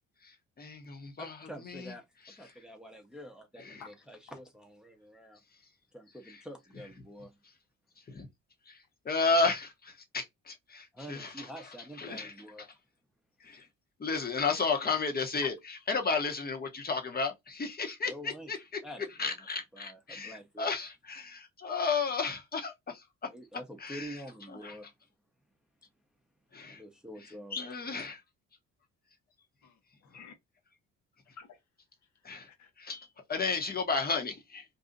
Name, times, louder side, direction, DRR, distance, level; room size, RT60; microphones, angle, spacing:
voice 1, 0.2-1.3 1.6-1.9 3.6-3.8 8.1-8.3 8.7-8.8 9.0-11.5 12.0-12.3 12.6-12.7 13.4-13.7 14.0-18.6 19.2-23.0 23.8-24.2 24.6-24.8 26.5-26.8 27.5-28.1 32.2-32.5 32.8-34.6, left 4 dB, 30° left, 1.0 m, -33 dB
voice 2, 1.2-5.4 5.9-7.4 10.9-12.7 18.1-18.5 18.8-19.3 19.7-20.7 23.3-24.9 26.6-27.6, equal, ahead, 0.8 m, -47 dB
voice 3, 3.8-4.2 15.4-15.5 29.6-30.3 31.2-31.6 32.1-32.7, left 7 dB, 70° left, 1.0 m, -51 dB
2.7 x 2.3 x 3.8 m
cardioid pair, 90°, 30 cm